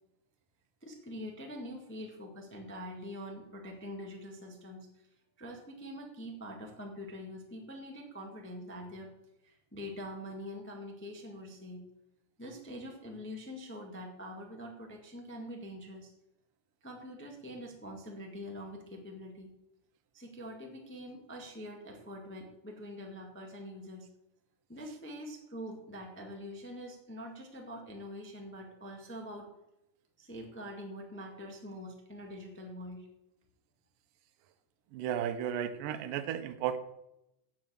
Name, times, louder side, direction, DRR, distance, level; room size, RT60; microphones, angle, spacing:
voice 1, 0.8-4.9 5.4-9.1 9.4-11.8 12.4-16.1 16.8-19.5 20.1-24.1 24.7-29.5 30.2-33.1, equal, 10° left, 1 dB, 0.8 m, -44 dB
voice 2, 34.9-36.8, right 9 dB, 85° right, 11 dB, 2.5 m, -34 dB
9.1 x 8.0 x 7.6 m, 0.86 s
omnidirectional pair, 3.7 m